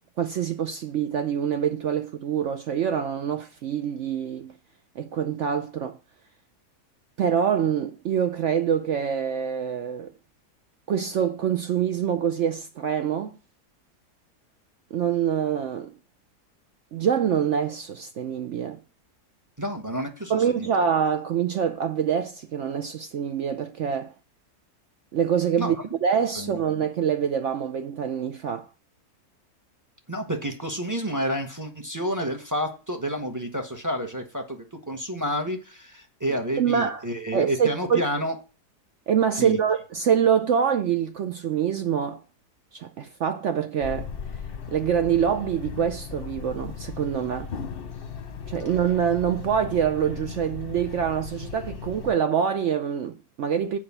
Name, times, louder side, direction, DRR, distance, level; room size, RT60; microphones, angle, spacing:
voice 1, 0.2-4.5 5.0-6.0 7.2-10.1 10.9-13.4 14.9-15.9 16.9-18.8 20.3-24.1 25.1-25.8 26.0-28.7 36.6-37.0 37.3-38.0 39.1-42.2 42.7-44.1 44.7-47.5 48.5-53.8, right 8 dB, 65° right, 0.7 m, -25 dB
voice 2, 19.6-20.9 25.6-25.7 26.4-26.6 30.1-38.3 39.3-39.6, equal, 15° right, 0.9 m, -30 dB
sound 1, 43.8-52.1, left 6 dB, 45° left, 0.9 m, -37 dB
7.3 x 5.0 x 7.0 m
omnidirectional pair, 1.7 m